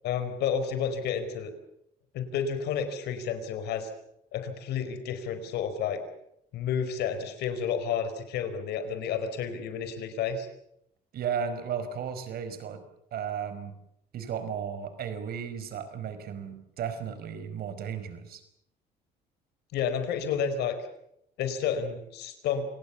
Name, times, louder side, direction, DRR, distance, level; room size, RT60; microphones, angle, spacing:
voice 1, 0.0-1.5 2.1-3.9 4.3-6.0 6.5-10.5 19.7-20.8 21.4-22.7, left 7 dB, 80° left, 9 dB, 4.9 m, -30 dB
voice 2, 11.1-12.8 13.1-13.8 14.1-18.4, right 7 dB, 65° right, 11 dB, 5.0 m, -34 dB
28.0 x 19.0 x 7.2 m, 0.76 s
cardioid pair, 110°, 17 cm